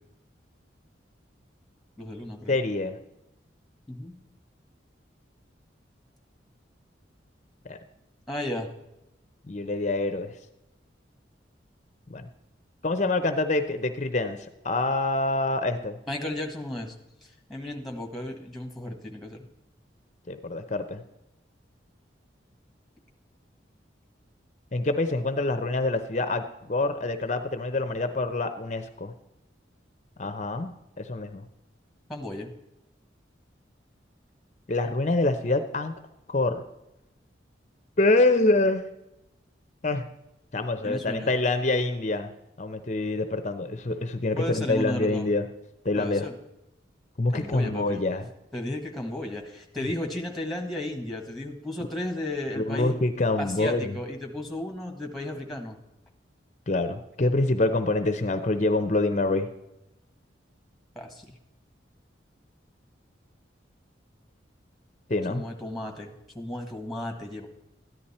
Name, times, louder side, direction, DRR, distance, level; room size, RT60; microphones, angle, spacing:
voice 1, 2.0-2.6 3.9-4.1 8.3-8.7 16.1-16.9 17.2-19.4 32.1-32.5 40.8-41.3 44.4-45.3 45.9-46.3 47.3-48.0 48.5-52.9 53.4-55.8 60.9-61.3 65.3-67.5, left 1 dB, ahead, 1 dB, 1.5 m, -34 dB
voice 2, 2.5-3.0 7.7-7.8 9.5-10.3 12.1-12.3 12.8-16.0 20.3-21.0 24.7-29.1 30.2-31.5 34.7-35.9 36.3-36.6 38.0-38.8 39.8-40.1 40.5-42.3 42.6-45.4 45.8-46.3 47.2-48.3 52.6-54.0 56.7-59.5 65.1-65.4, left 2 dB, 40° left, 8 dB, 0.7 m, -26 dB
14.0 x 10.5 x 4.3 m, 0.91 s
head